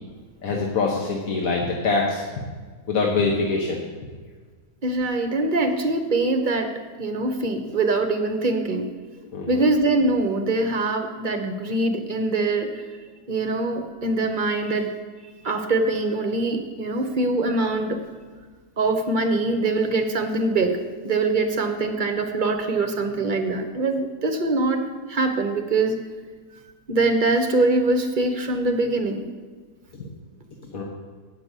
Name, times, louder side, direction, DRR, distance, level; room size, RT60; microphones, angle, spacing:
voice 1, 0.4-2.2 2.9-3.8 9.3-9.6 30.7-30.8, left 3 dB, 75° left, -1 dB, 1.5 m, -24 dB
voice 2, 4.8-8.9 9.5-12.8 13.3-14.9 15.4-18.0 18.8-26.0 26.9-29.3, right 2 dB, 40° right, 6 dB, 0.8 m, -23 dB
8.6 x 5.9 x 8.1 m, 1.5 s
omnidirectional pair, 1.5 m